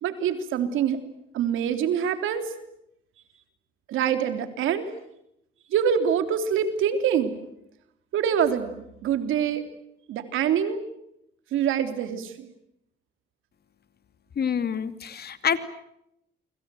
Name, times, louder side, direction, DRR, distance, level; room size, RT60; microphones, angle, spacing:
voice 1, 0.0-1.0 1.3-2.4 3.9-4.9 5.7-7.3 8.1-9.7 10.1-10.8 11.5-12.5, right 8 dB, 85° right, 8 dB, 3.4 m, -25 dB
voice 2, 14.4-15.6, left 7 dB, 55° left, 10 dB, 2.6 m, -27 dB
29.0 x 25.0 x 7.7 m, 0.79 s
cardioid pair, 90°, 20 cm